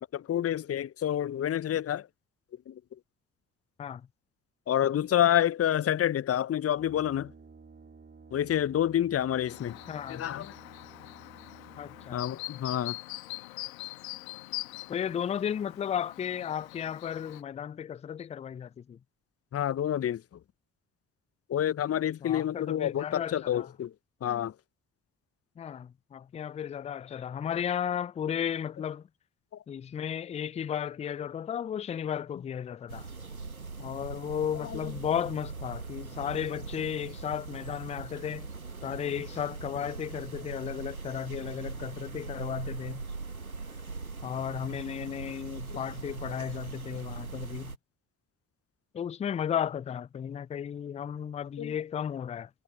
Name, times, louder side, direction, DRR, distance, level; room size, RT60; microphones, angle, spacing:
voice 1, 0.1-2.1 2.7-2.8 4.7-7.3 8.3-9.8 10.1-10.5 12.1-13.0 19.5-20.2 21.5-23.9 24.2-24.5 34.6-34.8 51.6-51.7, left 11 dB, 35° left, 0.9 m, -28 dB
Brass instrument, 6.7-12.5, right 4 dB, 25° right, 3.4 m, -54 dB
Chirp tweet, 9.4-17.4, left 19 dB, 75° left, 1.8 m, -43 dB
voice 2, 9.9-10.3 11.8-12.2 14.9-19.0 22.2-23.7 25.6-29.1 29.7-33.1 33.8-38.5 38.8-43.0 44.2-47.7 48.9-52.5, left 9 dB, 15° left, 0.4 m, -34 dB
sound 1, 32.9-47.8, right 4 dB, 90° right, 1.7 m, -41 dB
figure-of-eight pair, 40°, 41 cm